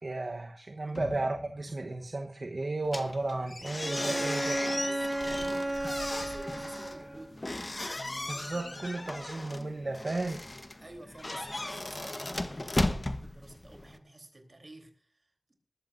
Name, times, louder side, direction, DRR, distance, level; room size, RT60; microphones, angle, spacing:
voice 1, 0.0-4.5 8.3-10.4, right 2 dB, 60° right, 1.1 m, -34 dB
sound 1, 0.9-3.1 3.5-3.6, left 2 dB, 80° left, 1.5 m, -46 dB
sound 2, 2.8-14.0, left 1 dB, 35° left, 1.2 m, -36 dB
Bowed string instrument, 3.8-7.3, right 1 dB, 30° right, 0.9 m, -34 dB
voice 2, 4.0-7.5 10.8-15.5, right 1 dB, 45° right, 3.7 m, -50 dB
20.0 x 14.5 x 2.7 m
wide cardioid pair, 70°, 0 cm